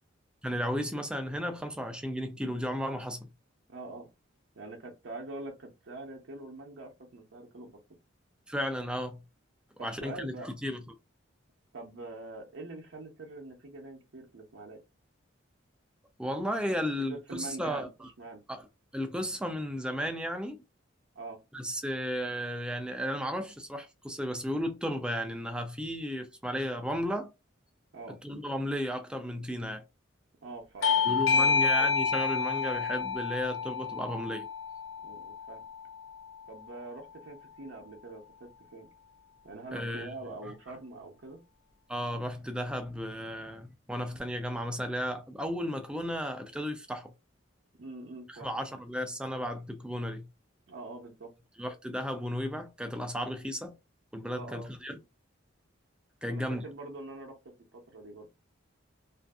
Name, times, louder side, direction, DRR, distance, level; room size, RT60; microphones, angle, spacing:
voice 1, 0.4-3.3 8.5-9.2 9.8-10.8 16.2-18.1 18.5-18.7 18.9-20.6 21.5-27.3 28.2-29.8 31.0-34.5 39.7-40.1 41.9-47.1 48.3-50.2 51.6-53.8 54.1-55.0 56.2-56.6, equal, 5° right, 0.4 m, -34 dB
voice 2, 3.7-4.1 4.6-7.8 9.8-10.5 11.7-14.8 16.9-17.9 18.2-18.4 21.1-21.4 27.9-28.2 30.4-31.6 35.0-35.7 36.5-38.9 39.4-41.4 47.8-48.5 50.7-51.3 54.3-54.7 56.3-58.3, right 2 dB, 65° right, 0.7 m, -44 dB
Bell / Doorbell, 30.8-36.0, left 5 dB, 70° left, 0.4 m, -29 dB
2.6 x 2.4 x 2.3 m
head